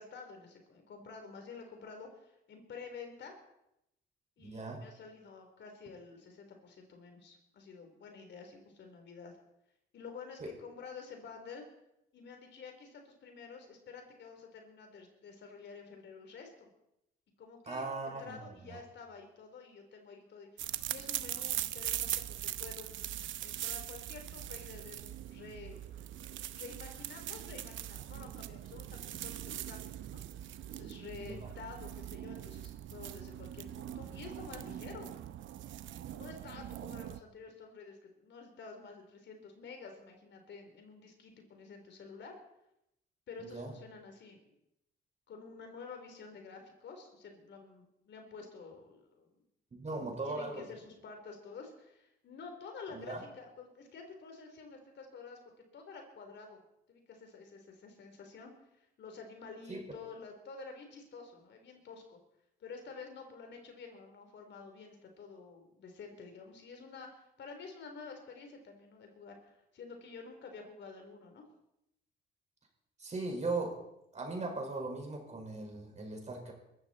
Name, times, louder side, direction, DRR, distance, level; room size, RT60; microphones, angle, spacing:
voice 1, 0.0-3.4 4.4-9.3 9.9-11.6 12.1-16.7 17.4-22.9 23.4-25.8 26.6-30.2 30.7-35.1 36.1-42.4 43.3-44.5 45.3-49.4 49.9-55.4 55.7-56.6 56.9-58.5 58.8-62.2 62.6-71.5, left 4 dB, 65° left, 4 dB, 3.7 m, -50 dB
voice 2, 4.4-4.8 10.4-10.5 17.7-18.4 18.7-18.8 31.1-31.4 43.4-43.7 49.7-50.6 52.9-53.2 59.7-59.8 73.0-73.8 74.1-76.5, right 3 dB, 35° right, 2 dB, 5.0 m, -38 dB
sound 1, 20.6-37.2, right 12 dB, 75° right, 0.8 m, -41 dB
21.5 x 14.0 x 4.3 m, 0.83 s
cardioid pair, 90°, 20 cm